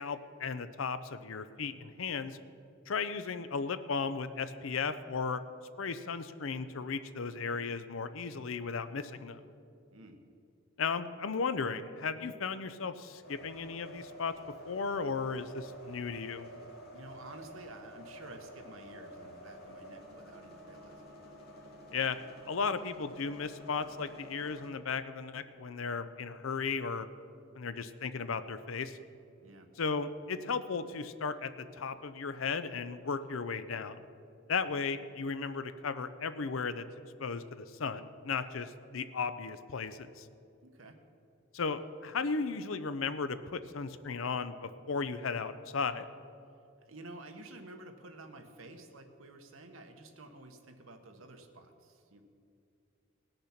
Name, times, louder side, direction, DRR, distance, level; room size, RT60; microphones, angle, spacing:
voice 1, 0.0-2.4 2.9-5.4 5.8-9.4 10.8-14.3 14.6-16.5 21.9-22.2 22.5-27.1 27.5-29.0 29.8-34.0 34.5-36.9 37.2-40.3 41.5-46.0, left 5 dB, 80° left, 12 dB, 0.6 m, -35 dB
sound 1, 13.2-24.7, equal, 50° left, 2.2 m, -50 dB
voice 2, 16.9-21.2 29.4-29.7 40.6-41.0 46.8-52.2, right 2 dB, 90° right, 5 dB, 1.3 m, -51 dB
18.5 x 6.6 x 5.8 m, 2.6 s
head